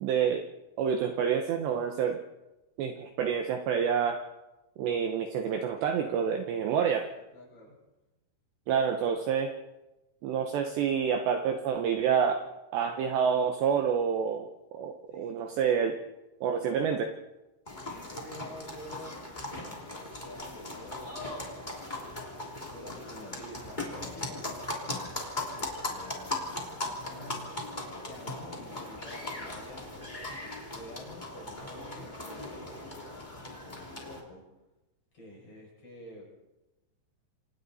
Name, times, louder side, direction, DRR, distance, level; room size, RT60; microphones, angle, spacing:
voice 1, 0.0-0.5 0.8-2.2 2.8-4.2 4.8-7.1 8.7-9.5 10.2-12.4 12.7-16.0 16.4-17.1, right 7 dB, 70° right, 5 dB, 2.8 m, -28 dB
voice 2, 7.0-7.8 15.1-15.7 17.8-19.1 19.9-21.4 22.3-24.5 25.5-27.7 28.1-29.9 30.3-32.8 33.6-34.4 35.1-36.3, left 1 dB, 30° left, -3 dB, 7.5 m, -49 dB
sound 1, 17.7-34.2, left 2 dB, 15° left, 2.0 m, -39 dB
27.5 x 27.5 x 4.2 m, 1.0 s
omnidirectional pair, 6.0 m